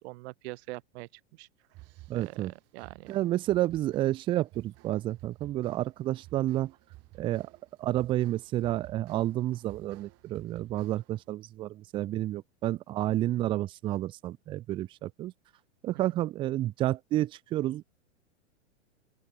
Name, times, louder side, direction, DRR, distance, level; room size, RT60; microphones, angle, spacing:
voice 1, 0.0-1.5 2.1-3.2 16.1-16.2, right 22 dB, 55° right, 3.5 m, -44 dB
sound 1, 1.7-11.3, right 20 dB, 40° right, 2.4 m, -54 dB
voice 2, 2.1-2.5 3.1-6.7 7.2-7.5 7.8-15.3 15.8-18.0, right 14 dB, 15° right, 0.3 m, -30 dB
open air
hypercardioid pair, 110°, 40 cm